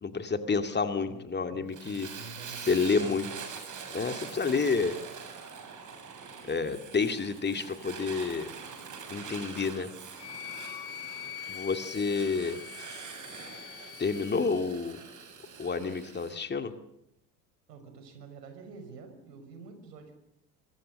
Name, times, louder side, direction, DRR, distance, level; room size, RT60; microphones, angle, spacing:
voice 1, 0.0-2.1 2.5-3.3 3.9-5.0 6.5-8.5 9.1-9.9 11.5-12.6 12.9-13.0 14.0-15.0 15.6-16.7, left 4 dB, 20° left, 8 dB, 2.2 m, -29 dB
voice 2, 1.5-3.4 17.7-20.1, right 4 dB, 70° right, 7 dB, 5.9 m, -48 dB
Fire, 1.7-16.3, right 6 dB, 35° right, 7.3 m, -44 dB
Wind instrument woodwind instrument, 10.1-14.3, left 10 dB, 50° left, 2.1 m, -43 dB
24.5 x 24.0 x 6.6 m, 0.81 s
figure-of-eight pair, 70°, 49 cm